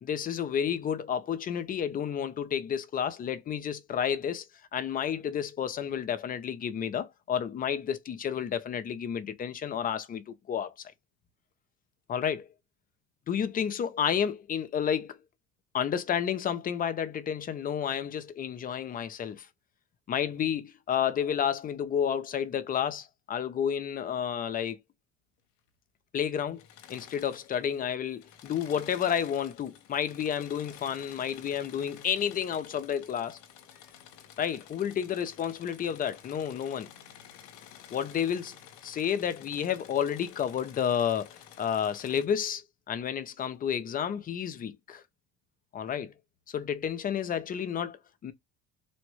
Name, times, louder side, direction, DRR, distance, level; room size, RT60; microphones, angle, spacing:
voice 1, 0.0-4.4 4.7-10.7 12.1-12.5 13.3-15.2 15.7-19.5 20.1-24.8 26.1-26.6 26.9-33.4 34.4-36.9 37.9-38.5 38.8-41.3 41.6-45.0 45.7-46.1 46.5-48.3, left 8 dB, 25° left, 0.4 m, -31 dB
Engine / Mechanisms, 26.5-27.8 28.1-42.3, left 10 dB, 80° left, 0.7 m, -52 dB
3.4 x 2.1 x 3.0 m
cardioid pair, 120°, 33 cm